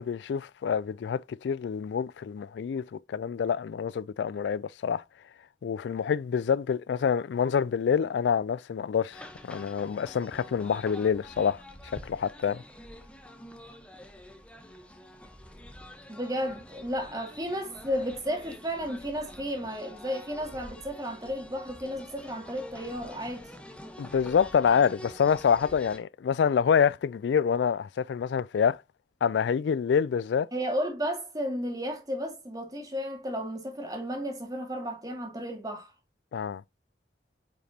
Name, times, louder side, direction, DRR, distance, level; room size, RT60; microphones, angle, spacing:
voice 1, 0.0-5.0 5.6-11.6 12.0-12.6 24.0-28.8 29.2-30.5 36.3-36.6, left 7 dB, 85° left, 0.3 m, -27 dB
sound 1, 9.1-26.0, left 1 dB, 5° left, 0.9 m, -47 dB
voice 2, 16.1-23.5 30.5-35.9, equal, 20° right, 2.2 m, -33 dB
9.2 x 5.1 x 2.8 m
head